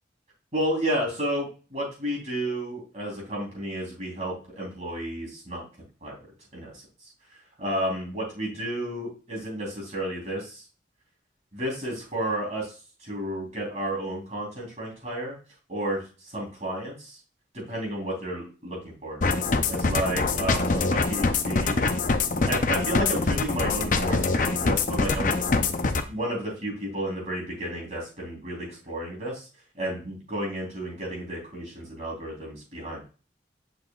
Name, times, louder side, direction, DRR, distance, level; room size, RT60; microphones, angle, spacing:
voice 1, 0.5-5.6 6.0-6.2 6.5-6.8 7.3-10.6 11.5-12.7 13.0-15.4 15.7-17.2 17.5-19.2 19.7-21.9 22.5-25.7 26.1-29.5 29.7-33.0, right 1 dB, 40° right, -2 dB, 3.6 m, -32 dB
sound 1, 19.2-26.0, left 3 dB, 45° left, 0.6 m, -24 dB
6.8 x 5.9 x 2.4 m, 0.35 s
head